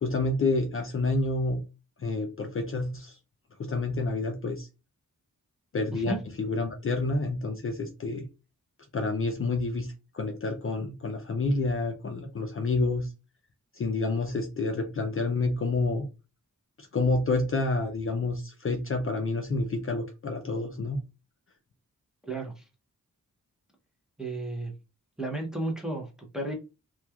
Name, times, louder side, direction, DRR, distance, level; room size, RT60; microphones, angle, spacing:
voice 1, 0.0-1.6 2.0-3.2 3.6-4.7 5.7-8.2 8.9-13.1 13.7-16.1 16.8-21.0, left 3 dB, 40° left, 3 dB, 0.4 m, -29 dB
voice 2, 22.2-22.6 24.2-24.7 25.2-26.5, right 2 dB, ahead, 0 dB, 0.6 m, -33 dB
2.9 x 2.2 x 2.2 m, 0.28 s
wide cardioid pair, 165°, 34 cm